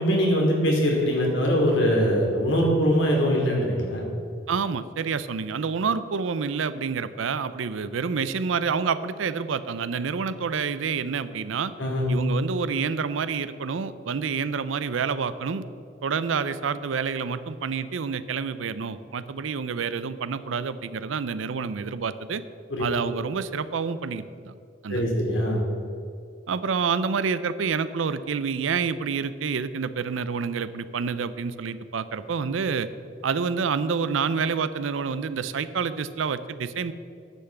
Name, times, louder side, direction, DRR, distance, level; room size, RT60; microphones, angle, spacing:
voice 1, 0.0-4.1 11.8-12.1 22.7-22.8 24.9-25.6, equal, 75° left, -1 dB, 2.6 m, -22 dB
voice 2, 4.5-11.7 12.1-15.6 16.0-22.4 22.8-24.6 24.8-25.0 26.5-32.9 33.2-36.9, right 5 dB, 90° right, 14 dB, 0.5 m, -28 dB
10.0 x 5.9 x 7.7 m, 2.5 s
head